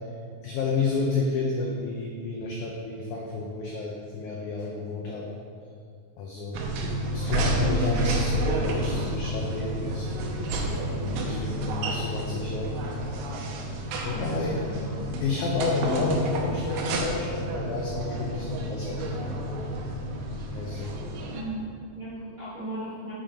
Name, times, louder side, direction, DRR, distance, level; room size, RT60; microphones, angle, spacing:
voice 1, 0.4-5.3 6.2-6.7 7.1-10.1 11.0-12.7 14.0-14.6 15.2-19.7 20.5-21.0, left 4 dB, 80° left, -2 dB, 1.7 m, -30 dB
sound 1, 6.5-21.4, right 1 dB, 85° right, 2.7 m, -30 dB
voice 2, 21.3-23.1, right 1 dB, 50° right, -11 dB, 1.0 m, -36 dB
7.1 x 5.2 x 4.9 m, 2.2 s
omnidirectional pair, 4.3 m